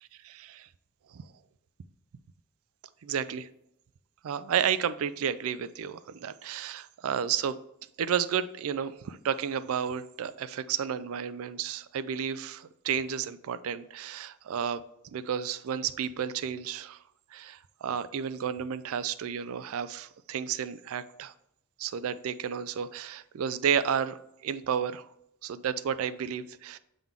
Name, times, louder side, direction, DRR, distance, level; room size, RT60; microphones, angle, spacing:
voice 1, 0.2-0.7 1.1-1.2 3.1-3.4 4.2-7.6 8.0-14.8 15.1-17.0 17.3-21.3 21.8-25.1 25.4-26.8, right 8 dB, 70° right, 13 dB, 0.4 m, -32 dB
7.2 x 3.8 x 3.5 m, 0.81 s
head